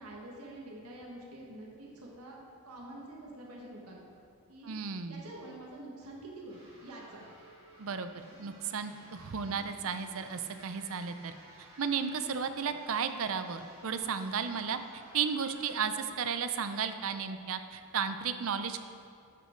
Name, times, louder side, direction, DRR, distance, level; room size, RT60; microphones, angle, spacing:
voice 1, 0.0-2.4 2.6-4.0 4.5-4.7 5.1-7.3, right 1 dB, 85° right, -2 dB, 1.6 m, -47 dB
voice 2, 4.6-5.2 7.8-8.1 8.4-11.4 11.8-18.8, right 6 dB, 65° right, 9 dB, 0.6 m, -34 dB
sound 1, 6.5-15.9, right 1 dB, 30° right, 2.5 m, -56 dB
12.5 x 5.6 x 4.5 m, 2.3 s
head